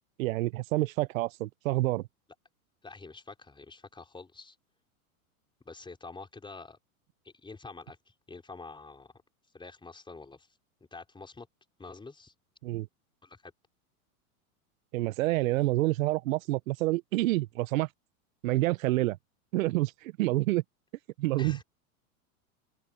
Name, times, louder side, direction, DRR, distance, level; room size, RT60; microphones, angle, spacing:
voice 1, 0.2-2.0 12.6-12.9 14.9-17.9 18.4-19.2 19.5-20.6 21.2-21.6, right 18 dB, 65° right, 0.9 m, -28 dB
voice 2, 2.8-4.5 5.6-6.8 7.4-8.0 8.3-9.1 9.5-10.5 10.9-11.5 11.8-12.3 13.2-13.5 21.4-21.6, left 3 dB, 10° left, 4.9 m, -46 dB
open air
hypercardioid pair, 115°, 43 cm